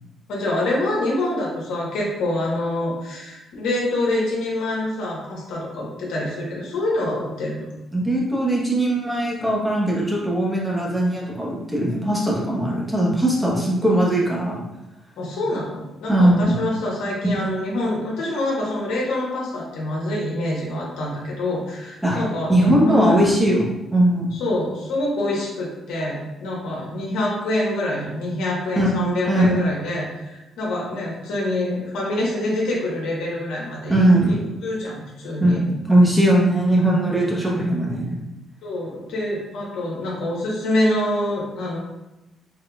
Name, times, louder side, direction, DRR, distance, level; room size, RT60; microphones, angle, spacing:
voice 1, 0.3-7.7 15.2-23.2 24.3-35.6 38.6-41.8, left 1 dB, 90° left, -4 dB, 1.2 m, -26 dB
voice 2, 7.9-14.6 16.1-16.6 17.2-17.3 22.0-22.2 22.5-24.4 28.8-28.9 29.3-29.5 33.9-34.4 35.4-38.2, right 1 dB, 5° right, -4 dB, 1.1 m, -19 dB
3.7 x 3.7 x 2.4 m, 0.97 s
cardioid pair, 90°, 0 cm